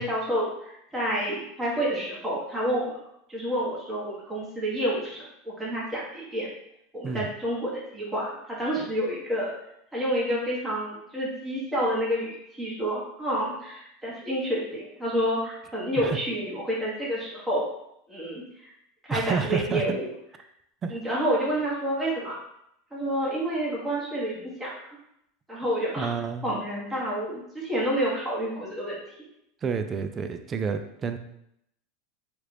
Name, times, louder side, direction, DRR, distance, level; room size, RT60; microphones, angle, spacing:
voice 1, 0.0-3.0 3.3-6.5 6.9-9.5 9.9-17.7 18.1-18.7 19.0-20.1 20.9-22.4 22.9-24.7 25.5-26.1 26.4-29.0, equal, 10° right, -6 dB, 1.2 m, -29 dB
voice 2, 19.1-19.8 20.8-21.0 26.0-26.5 29.6-31.2, right 5 dB, 30° right, 8 dB, 0.3 m, -29 dB
3.0 x 2.4 x 3.2 m, 0.77 s
hypercardioid pair, 105°, 0 cm